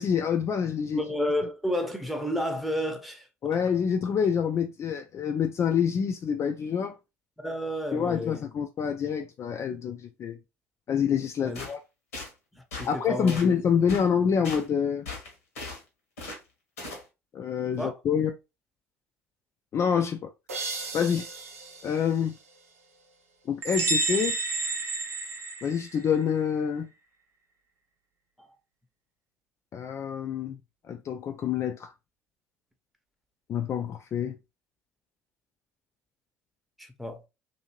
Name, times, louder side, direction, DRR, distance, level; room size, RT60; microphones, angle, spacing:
voice 1, 0.0-1.0 3.4-7.0 7.9-10.4 10.9-11.8 12.8-15.1 17.3-18.3 19.7-20.3 20.9-21.3 21.8-22.3 23.5-24.4 25.6-26.9 29.7-30.6 30.9-31.9 33.5-34.4, left 7 dB, 40° left, 0.3 m, -27 dB
voice 2, 0.9-3.6 7.4-8.4 11.4-11.6 12.5-13.4 17.8-17.9 28.4-28.5 36.8-37.2, equal, ahead, 0.7 m, -31 dB
sound 1, 11.5-11.7 12.1-12.3 12.7-12.9 13.3-13.5 13.9-14.1 14.4-14.6 15.1-15.8 16.2-16.4 16.8-17.0, left 3 dB, 80° left, 1.0 m, -38 dB
sound 2, 20.5-23.2, right 3 dB, 85° right, 0.5 m, -39 dB
sound 3, 23.6-26.2, right 3 dB, 35° right, 0.7 m, -29 dB
2.7 x 2.6 x 2.9 m
figure-of-eight pair, 60°, 8 cm